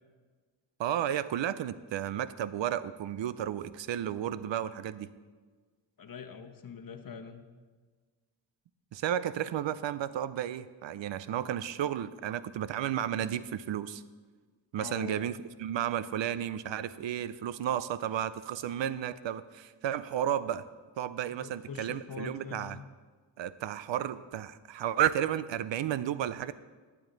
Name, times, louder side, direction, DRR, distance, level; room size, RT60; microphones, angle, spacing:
voice 1, 0.8-5.1 8.9-14.0 14.7-20.7 21.0-22.8 23.4-26.5, right 10 dB, 75° right, 15 dB, 0.6 m, -33 dB
voice 2, 6.0-7.4 14.8-15.3 21.3-22.9, left 6 dB, 45° left, 7 dB, 1.0 m, -43 dB
11.5 x 8.6 x 3.9 m, 1.4 s
cardioid pair, 55°, 46 cm